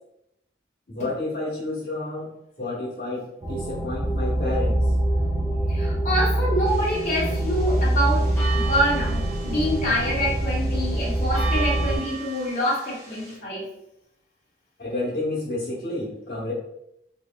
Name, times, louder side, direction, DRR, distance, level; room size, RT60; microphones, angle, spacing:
voice 1, 0.9-2.3 2.6-4.8 14.8-16.5, left 2 dB, 60° left, -8 dB, 1.0 m, -30 dB
sound 1, 3.4-12.0, right 1 dB, 20° right, 0.6 m, -24 dB
voice 2, 5.7-13.6, equal, 40° left, -7 dB, 1.1 m, -26 dB
sound 2, 6.7-13.4, right 4 dB, 15° left, 1.1 m, -38 dB
3.0 x 2.7 x 2.2 m, 0.81 s
head